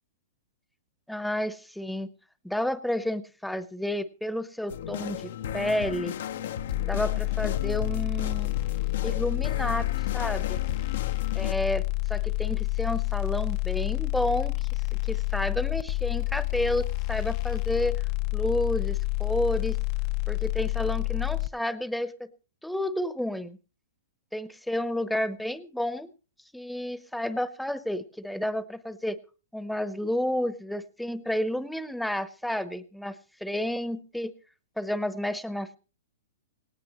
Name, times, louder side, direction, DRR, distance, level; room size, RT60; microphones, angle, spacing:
voice 1, 1.1-2.1 2.4-6.1 6.8-8.6 9.0-10.6 11.3-11.8 12.1-14.7 15.1-18.0 18.3-19.8 20.3-22.3 22.6-23.6 24.3-26.1 26.5-29.2 29.5-34.3 34.8-35.8, left 1 dB, ahead, 14 dB, 0.9 m, -31 dB
sound 1, 4.7-11.5, left 9 dB, 65° left, 0.9 m, -35 dB
sound 2, 6.7-21.5, left 27 dB, 45° left, 0.7 m, -28 dB
18.5 x 17.0 x 3.1 m, 0.35 s
hypercardioid pair, 135°, 0 cm